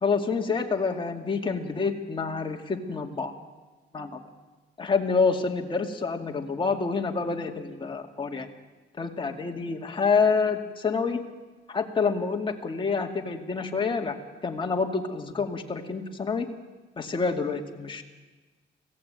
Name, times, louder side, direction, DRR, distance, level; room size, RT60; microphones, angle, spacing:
voice 1, 0.0-3.3 3.9-4.1 4.8-8.5 9.0-11.2 11.7-14.2 14.4-16.5 17.0-18.0, left 5 dB, 25° left, 2 dB, 2.3 m, -27 dB
25.0 x 17.5 x 9.0 m, 1.3 s
cardioid pair, 145°, 19 cm